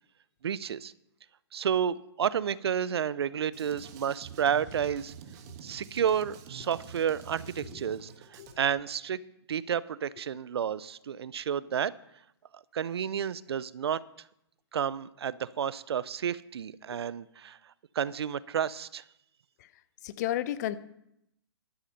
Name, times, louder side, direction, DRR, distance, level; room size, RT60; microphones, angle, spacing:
voice 1, 0.4-0.9 1.5-5.1 5.6-9.2 9.5-11.9 12.7-14.0 14.7-17.6 18.0-19.0, right 8 dB, 70° right, 19 dB, 0.5 m, -31 dB
Drum kit, 3.5-8.5, right 6 dB, 40° right, 1.5 m, -47 dB
voice 2, 20.0-20.8, left 12 dB, 40° left, 15 dB, 0.7 m, -32 dB
11.5 x 8.5 x 5.7 m, 0.79 s
hypercardioid pair, 135°, 14 cm